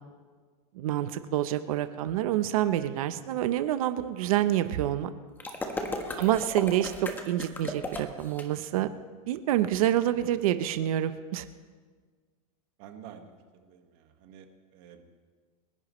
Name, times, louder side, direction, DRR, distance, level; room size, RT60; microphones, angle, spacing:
voice 1, 0.7-5.1 6.2-8.9 9.3-11.5, right 12 dB, 75° right, 11 dB, 0.9 m, -27 dB
sound 1, 5.4-8.4, left 2 dB, 10° left, 1.4 m, -35 dB
voice 2, 6.1-6.5 12.8-13.3 13.6-14.5 14.7-15.0, right 9 dB, 50° right, 5 dB, 1.8 m, -48 dB
28.5 x 11.0 x 3.2 m, 1.5 s
supercardioid pair, 150°, 19 cm